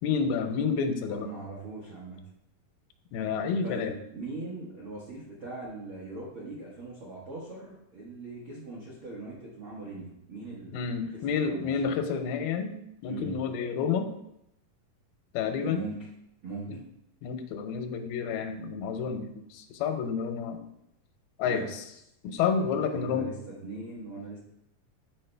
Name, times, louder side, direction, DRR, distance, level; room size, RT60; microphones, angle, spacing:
voice 1, 0.0-1.3 3.1-3.9 10.7-12.7 13.0-14.1 15.3-15.8 16.7-16.8 17.2-20.7 21.4-21.8 22.2-23.3, left 6 dB, 85° left, 7 dB, 2.5 m, -29 dB
voice 2, 1.0-2.2 3.6-10.8 11.4-11.7 13.0-13.4 15.6-16.0 16.4-16.7 21.4-21.7 22.5-22.6 22.9-23.4 23.6-24.4, right 3 dB, 65° right, -6 dB, 1.2 m, -40 dB
8.6 x 4.2 x 3.3 m, 0.80 s
omnidirectional pair, 4.2 m